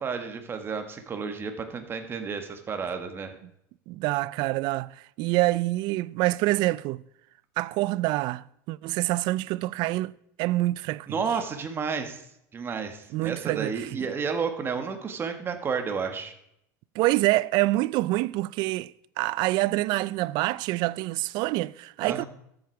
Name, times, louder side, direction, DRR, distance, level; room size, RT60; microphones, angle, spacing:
voice 1, 0.0-3.4 11.1-12.3 12.5-16.3 22.0-22.2, right 5 dB, 25° right, 1.6 m, -31 dB
voice 2, 3.9-7.0 7.6-10.1 10.4-11.2 13.1-13.9 16.9-22.2, right 19 dB, 60° right, 0.4 m, -26 dB
14.0 x 7.9 x 4.6 m
supercardioid pair, 130°, 9 cm